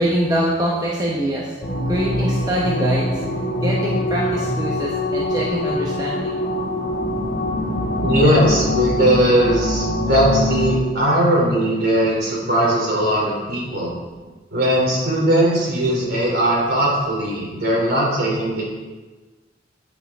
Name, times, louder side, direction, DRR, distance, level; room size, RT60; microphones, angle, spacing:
voice 1, 0.0-1.5 1.9-3.1 3.6-6.3, right 1 dB, 20° right, -5 dB, 1.1 m, -23 dB
sound 1, 1.6-10.8, left 1 dB, 75° left, 2.2 m, -23 dB
voice 2, 8.0-13.9 14.5-18.6, right 1 dB, 55° right, -3 dB, 3.3 m, -19 dB
11.0 x 7.3 x 3.7 m, 1.3 s
head